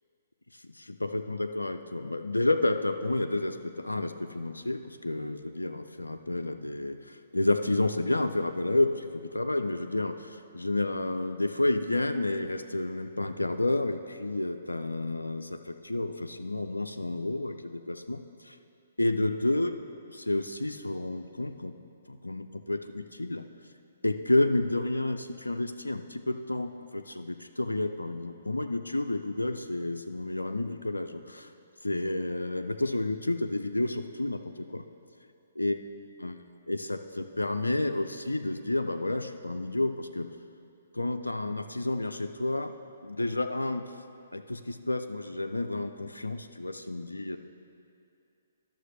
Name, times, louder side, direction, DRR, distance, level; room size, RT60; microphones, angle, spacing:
voice 1, 0.6-18.6 19.0-19.8 20.1-21.7 22.1-23.5 24.0-31.5 31.8-34.8 35.6-35.8 36.2-36.4 36.7-40.3 40.9-42.7 43.0-43.8 44.3-47.4, left 2 dB, 85° left, 8 dB, 0.3 m, -30 dB
11.5 x 6.5 x 3.2 m, 2.5 s
figure-of-eight pair, 130°, 0 cm